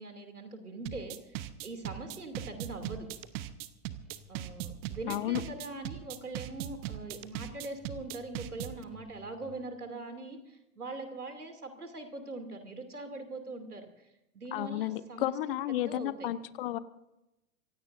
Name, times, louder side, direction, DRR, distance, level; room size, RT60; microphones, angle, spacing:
voice 1, 0.0-3.1 4.3-16.3, right 2 dB, 80° right, 6 dB, 2.8 m, -42 dB
sound 1, 0.9-8.8, right 14 dB, 30° right, 0.9 m, -39 dB
sound 2, 1.9-9.8, left 3 dB, ahead, 2.7 m, -57 dB
voice 2, 5.1-5.4 14.5-16.8, left 13 dB, 40° left, 16 dB, 0.8 m, -32 dB
26.5 x 16.0 x 2.6 m, 0.92 s
figure-of-eight pair, 100°, 44 cm